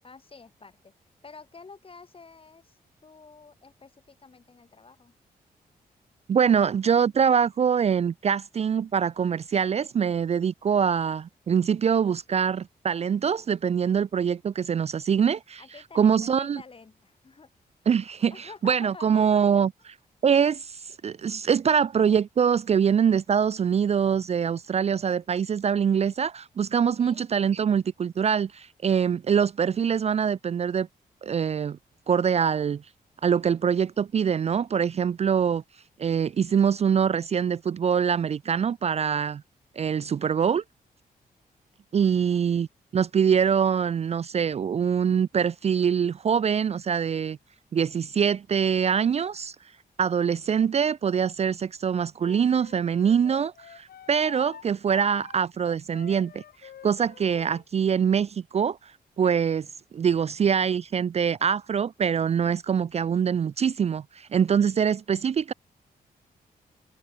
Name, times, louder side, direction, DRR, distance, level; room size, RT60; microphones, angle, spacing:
voice 1, 0.0-0.9 1.2-5.1 15.6-17.5 18.3-19.2 26.8-27.2 42.0-42.4, left 4 dB, 35° left, 4.8 m, -49 dB
voice 2, 6.3-15.6 15.9-16.6 17.9-19.9 20.2-30.9 31.2-31.8 32.1-32.8 33.2-35.6 36.0-39.4 39.8-40.6 41.9-42.7 42.9-47.4 47.7-49.6 50.0-58.9 59.2-59.7 59.9-65.5, right 7 dB, 40° right, 0.4 m, -24 dB
Wind instrument woodwind instrument, 52.2-57.6, left 9 dB, 75° left, 2.1 m, -46 dB
open air
cardioid pair, 95°, 16 cm